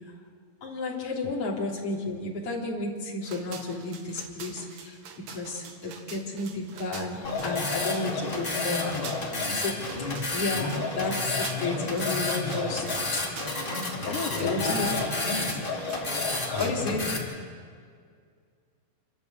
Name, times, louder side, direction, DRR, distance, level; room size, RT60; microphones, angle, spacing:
voice 1, 0.6-5.0 5.3-9.0 9.5-13.2 14.4-14.9 16.6-17.1, left 3 dB, 35° left, -4 dB, 4.0 m, -32 dB
sound 1, 3.2-16.7, right 7 dB, 75° right, 3.3 m, -45 dB
sound 2, 7.1-9.6 10.6-13.1 14.2-16.8, left 4 dB, 65° left, 4.3 m, -36 dB
sound 3, 7.2-17.2, left 2 dB, 15° left, 1.9 m, -31 dB
voice 2, 10.5-10.8 14.0-15.1 16.5-17.3, left 7 dB, 80° left, 4 dB, 1.7 m, -36 dB
28.0 x 12.5 x 8.1 m, 2.1 s
omnidirectional pair, 4.8 m